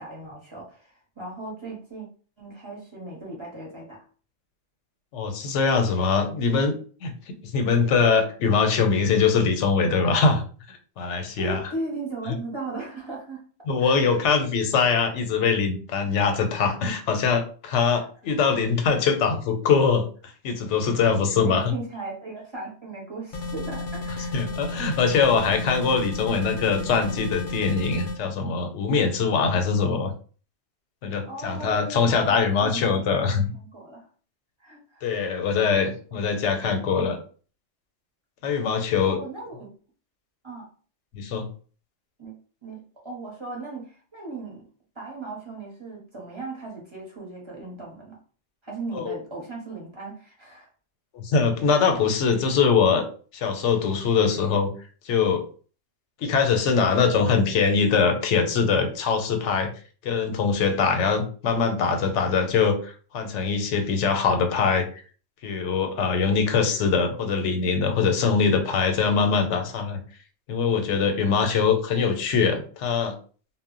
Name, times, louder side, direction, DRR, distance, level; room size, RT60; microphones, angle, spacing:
voice 1, 0.0-2.1 2.4-4.0 11.1-13.4 13.8-14.2 21.4-24.3 31.3-34.1 34.6-35.1 36.2-36.3 39.0-39.7 40.4-40.7 42.2-42.3 42.6-44.6 45.0-48.2 48.6-50.7, right 3 dB, 30° right, -3 dB, 0.7 m, -37 dB
voice 2, 5.1-6.7 7.0-11.6 13.7-20.1 20.4-21.6 24.3-30.1 31.0-33.5 35.0-37.2 38.4-39.2 41.1-41.5 48.9-49.1 51.1-53.1 53.3-54.7 55.1-55.4 56.2-59.7 60.0-64.9 65.4-70.0 70.5-73.1, left 5 dB, 90° left, 6 dB, 0.9 m, -22 dB
sound 1, 23.3-28.2, left 2 dB, 55° left, 0.6 m, -32 dB
2.1 x 2.0 x 3.6 m, 0.40 s
omnidirectional pair, 1.2 m